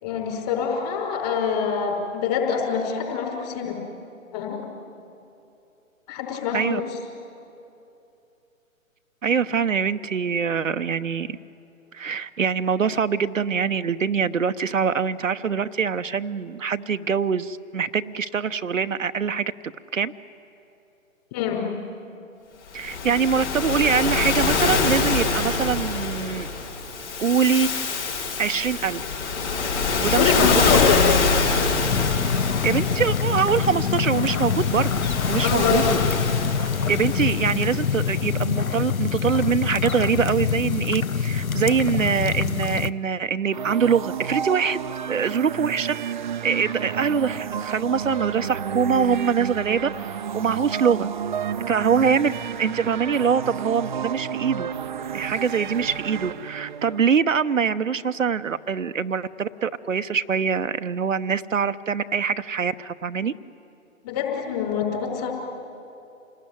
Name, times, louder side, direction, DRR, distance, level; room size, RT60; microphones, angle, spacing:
voice 1, 0.0-3.8 4.3-4.6 6.1-6.9 21.3-21.7 30.2-31.1 35.4-36.0 52.0-52.1 64.0-65.3, left 7 dB, 30° left, 1 dB, 5.2 m, -25 dB
voice 2, 9.2-11.4 11.9-19.5 19.9-20.1 22.7-26.5 27.2-27.7 28.4-29.1 30.0-30.8 32.6-36.0 36.9-46.0 46.4-51.1 51.7-52.3 52.6-54.7 55.1-63.3, right 6 dB, 70° right, 10 dB, 0.8 m, -24 dB
Waves surf, 22.8-38.3, left 4 dB, 55° left, 5.7 m, -25 dB
sound 1, 31.8-42.9, left 6 dB, 85° left, 0.8 m, -25 dB
sound 2, 43.5-57.0, right 8 dB, 35° right, 0.6 m, -31 dB
28.0 x 19.0 x 9.9 m, 2.8 s
figure-of-eight pair, 135°, 41 cm